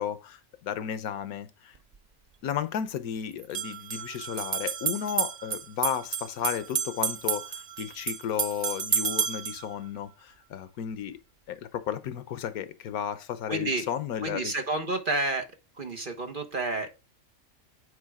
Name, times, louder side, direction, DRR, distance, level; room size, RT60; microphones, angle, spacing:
voice 1, 0.0-1.7 2.4-11.2 11.5-14.5, left 9 dB, 90° left, 1.2 m, -33 dB
sound 1, 1.8-1.9 3.4-9.6, right 7 dB, 80° right, 0.3 m, -31 dB
voice 2, 13.5-13.9 14.2-15.5 15.8-16.9, right 2 dB, 40° right, 1.2 m, -30 dB
8.6 x 4.7 x 3.5 m
omnidirectional pair, 1.5 m